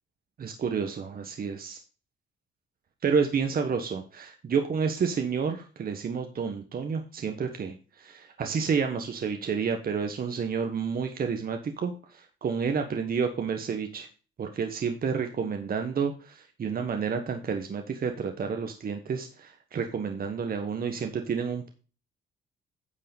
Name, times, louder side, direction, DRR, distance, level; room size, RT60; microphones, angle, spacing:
voice 1, 0.4-1.8 3.0-14.1 14.4-21.7, right 6 dB, 50° right, 5 dB, 1.4 m, -30 dB
9.8 x 5.5 x 5.3 m, 0.36 s
cardioid pair, 90°, 20 cm